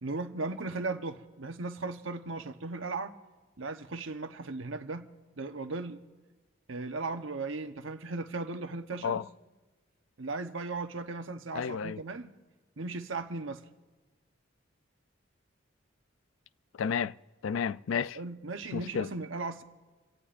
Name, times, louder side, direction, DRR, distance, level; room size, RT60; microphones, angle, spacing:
voice 1, 0.0-3.1 3.6-5.1 5.4-6.0 6.7-9.2 10.2-12.3 12.8-13.7 18.2-19.6, right 3 dB, 85° right, 1.0 m, -37 dB
voice 2, 11.5-12.0 16.8-17.1 17.4-18.2 18.7-19.1, left 7 dB, 80° left, 0.4 m, -31 dB
27.5 x 17.0 x 2.6 m
head